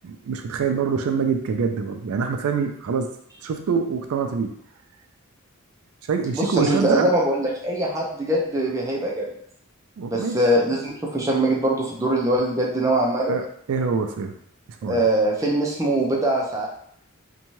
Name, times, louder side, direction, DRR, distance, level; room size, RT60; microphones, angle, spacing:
voice 1, 0.0-3.1 3.4-4.5 6.1-7.1 10.0-10.4 13.2-14.4 14.7-15.0, right 5 dB, 85° right, 5 dB, 0.4 m, -25 dB
voice 2, 6.3-9.3 10.1-13.4 14.9-16.7, right 1 dB, 15° right, -3 dB, 0.4 m, -22 dB
2.7 x 2.2 x 3.0 m, 0.66 s
head